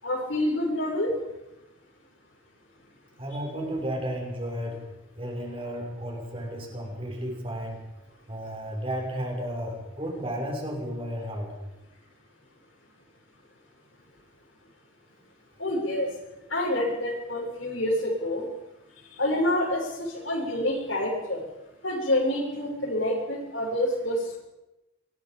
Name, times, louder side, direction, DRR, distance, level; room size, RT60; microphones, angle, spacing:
voice 1, 0.0-1.1 15.6-16.1 16.5-18.5 19.1-21.4 21.8-24.4, left 1 dB, 85° left, -3 dB, 6.6 m, -27 dB
voice 2, 3.2-4.8 5.2-7.8 8.3-11.5, equal, 30° right, 0 dB, 5.9 m, -33 dB
26.0 x 21.0 x 5.3 m, 0.97 s
head